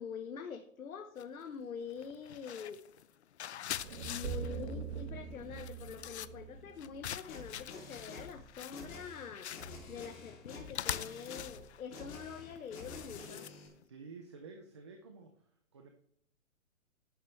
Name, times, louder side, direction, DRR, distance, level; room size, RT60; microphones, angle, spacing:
voice 1, 0.0-2.8 4.0-9.5 9.9-13.5, left 6 dB, 85° left, 7 dB, 1.1 m, -45 dB
sound 1, 1.2-1.5 1.9-13.9, left 10 dB, 55° left, 0.5 m, -44 dB
sound 2, 3.8-7.9, right 6 dB, 45° right, 2.0 m, -43 dB
sound 3, 7.3-13.7, left 3 dB, 25° left, 3.0 m, -49 dB
voice 2, 13.8-15.9, right 4 dB, 20° right, 5 dB, 0.5 m, -51 dB
11.5 x 10.0 x 3.3 m, 0.70 s
hypercardioid pair, 165°, 41 cm